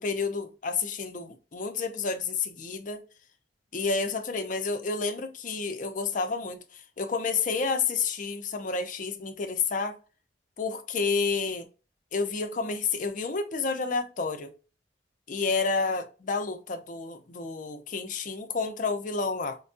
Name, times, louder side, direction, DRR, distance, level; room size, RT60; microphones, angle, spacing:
voice 1, 0.0-3.0 3.7-10.0 10.6-11.7 12.1-14.5 15.3-19.6, left 4 dB, 50° left, 0.6 m, -30 dB
4.4 x 2.3 x 2.5 m
head